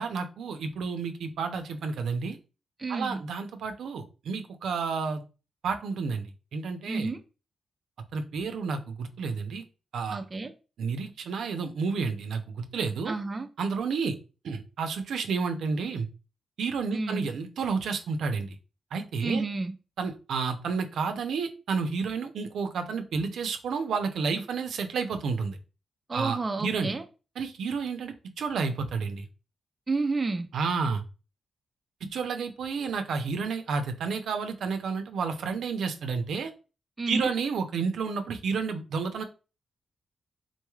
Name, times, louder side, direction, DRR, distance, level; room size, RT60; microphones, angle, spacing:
voice 1, 0.0-2.4 2.9-5.2 5.6-6.3 6.5-7.1 8.1-9.6 9.9-10.2 10.8-12.4 12.7-13.2 13.6-14.1 14.4-16.1 16.6-18.6 18.9-19.4 20.0-25.6 26.1-26.9 27.4-29.2 30.5-31.0 32.1-36.5 37.1-39.2, right 5 dB, 85° right, 0.5 m, -30 dB
voice 2, 2.8-3.2 6.9-7.2 10.1-10.5 13.1-13.5 16.9-17.3 19.2-19.8 26.1-27.0 29.9-30.5 37.0-37.3, right 3 dB, 25° right, 0.4 m, -30 dB
3.9 x 2.3 x 3.1 m
wide cardioid pair, 130°, 0 cm